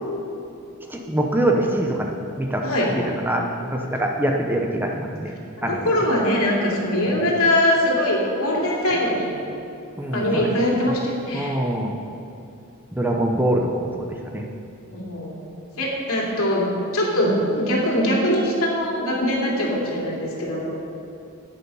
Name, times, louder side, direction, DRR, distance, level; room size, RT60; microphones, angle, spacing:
voice 1, 0.9-2.6 3.2-5.3 5.6-5.9 7.1-7.2 10.0-10.8 11.3-12.0 12.9-14.5, right 1 dB, 10° right, 1 dB, 0.7 m, -24 dB
voice 2, 5.6-9.3 10.1-11.5 14.9-15.4 15.8-16.6 16.9-20.8, left 1 dB, 75° left, -3 dB, 2.7 m, -22 dB
10.5 x 9.2 x 5.5 m, 2.7 s
head